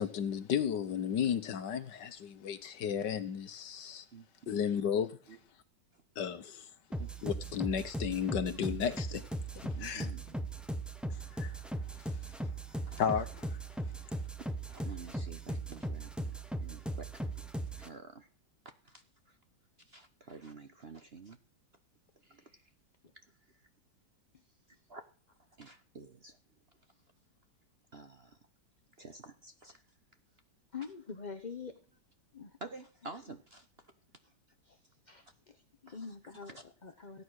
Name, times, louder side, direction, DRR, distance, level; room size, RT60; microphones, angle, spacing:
voice 1, 0.0-4.0 4.5-5.2 6.2-6.7 7.2-9.2 9.5-10.1 11.1-11.6 12.0-12.3 13.0-13.6, left 8 dB, 65° left, 1.6 m, -34 dB
voice 2, 4.1-4.6 5.3-5.4 5.9-6.0 7.0-7.1 9.7-10.2 12.9-13.1 14.7-17.1 17.8-18.3 18.8-19.4 19.8-21.4 22.2-22.6 24.9-25.0 25.6-26.4 27.9-28.4 29.0-29.8 32.6-33.7 35.9-36.0 36.3-36.4, right 3 dB, 40° right, 1.0 m, -50 dB
sound 1, 6.9-17.9, right 1 dB, ahead, 0.6 m, -38 dB
voice 3, 30.7-31.7 32.3-32.6 34.6-37.2, left 5 dB, 35° left, 0.7 m, -46 dB
16.0 x 9.6 x 6.4 m
omnidirectional pair, 2.1 m